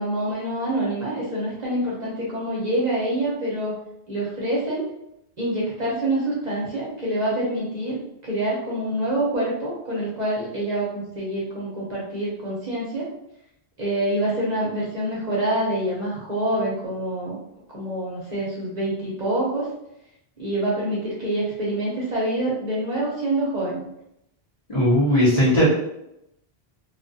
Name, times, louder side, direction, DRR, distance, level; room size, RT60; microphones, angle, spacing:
voice 1, 0.0-3.8 4.1-4.9 5.4-13.1 13.8-17.4 17.7-19.7 20.4-23.8, right 1 dB, 50° right, -6 dB, 0.7 m, -26 dB
voice 2, 24.7-25.6, equal, 35° left, -8 dB, 0.9 m, -18 dB
2.3 x 2.3 x 2.6 m, 0.83 s
omnidirectional pair, 1.1 m